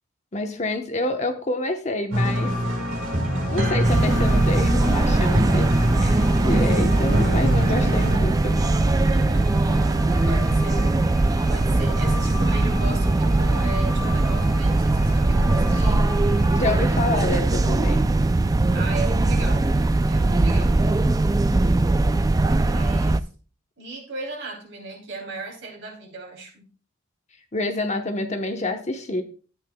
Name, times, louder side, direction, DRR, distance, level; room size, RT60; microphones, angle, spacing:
voice 1, 0.3-2.5 3.5-5.7 6.0-8.7 16.5-18.1 27.5-29.2, left 2 dB, 35° left, 0.9 m, -27 dB
sound 1, 2.1-8.2, equal, 80° right, 1.7 m, -24 dB
sound 2, 2.2-17.2, equal, ahead, 1.8 m, -37 dB
sound 3, 3.8-23.2, right 2 dB, 20° right, 0.3 m, -20 dB
voice 2, 7.2-7.7 9.0-11.0 11.5-16.1 18.7-19.7 20.1-20.8 22.6-23.3 23.8-26.6, right 2 dB, 60° right, 3.1 m, -37 dB
13.0 x 8.8 x 2.2 m
head